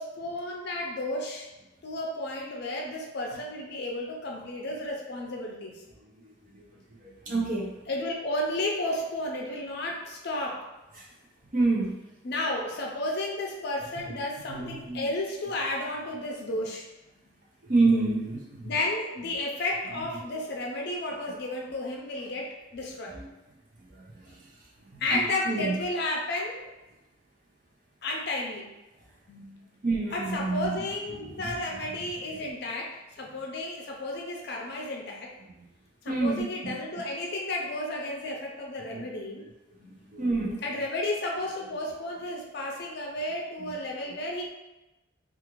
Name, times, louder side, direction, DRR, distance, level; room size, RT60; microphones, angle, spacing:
voice 1, 0.0-1.5 1.8-5.8 7.9-10.6 12.2-16.9 18.6-23.2 25.0-26.7 28.0-28.7 29.3-29.7 30.1-35.3 36.0-39.4 39.8-40.0 40.6-44.5, left 1 dB, 55° left, -1 dB, 0.5 m, -32 dB
voice 2, 6.0-6.6 7.0-7.7 10.9-11.1 11.5-11.9 14.0-14.1 14.5-15.1 17.6-18.7 23.1-23.3 23.9-24.5 24.9-25.2 25.5-25.8 29.8-30.8 31.1-32.1 36.1-36.8 38.9-39.0 40.1-40.6 43.6-43.8, right 3 dB, 40° right, -4 dB, 0.6 m, -29 dB
2.4 x 2.4 x 3.0 m, 1.0 s
head